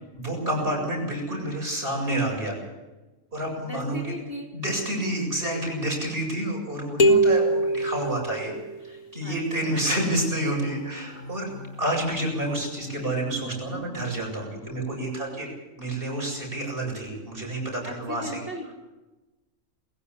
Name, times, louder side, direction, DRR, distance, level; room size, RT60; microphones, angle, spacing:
voice 1, 0.0-2.6 3.3-4.1 4.5-8.5 8.8-11.5 11.8-15.5 15.8-18.4, right 1 dB, 45° right, 0 dB, 8.1 m, -29 dB
voice 2, 0.5-0.9 3.6-4.5 9.2-9.7 17.8-18.7, equal, 45° left, 0 dB, 3.9 m, -38 dB
sound 1, 7.0-8.9, right 1 dB, 80° left, 2.4 m, -22 dB
sound 2, 9.5-14.1, left 1 dB, 20° left, 3.0 m, -40 dB
21.5 x 17.0 x 8.4 m, 1.1 s
omnidirectional pair, 1.4 m